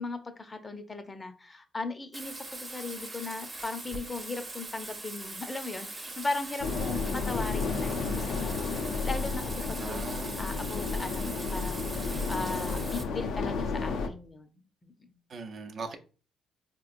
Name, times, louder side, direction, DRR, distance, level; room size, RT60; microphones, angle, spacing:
voice 1, 0.0-10.1 10.4-11.2 11.5-15.2, left 3 dB, 25° left, 0.6 m, -38 dB
Bathtub (filling or washing), 2.1-13.0, right 2 dB, 20° right, 0.7 m, -41 dB
sound 1, 6.6-14.1, left 4 dB, 85° left, 0.5 m, -32 dB
voice 2, 9.8-10.5 15.3-16.0, right 4 dB, 55° right, 0.6 m, -40 dB
4.2 x 2.9 x 2.5 m
cardioid pair, 90°, 0 cm